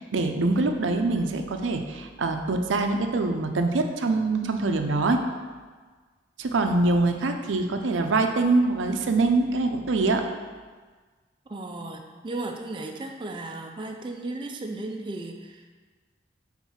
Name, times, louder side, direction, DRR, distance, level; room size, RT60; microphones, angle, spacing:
voice 1, 0.0-5.2 6.4-10.2, right 3 dB, 90° right, 5 dB, 0.5 m, -24 dB
voice 2, 11.5-15.7, right 2 dB, 25° right, 3 dB, 0.3 m, -35 dB
4.5 x 3.7 x 5.6 m, 1.4 s
head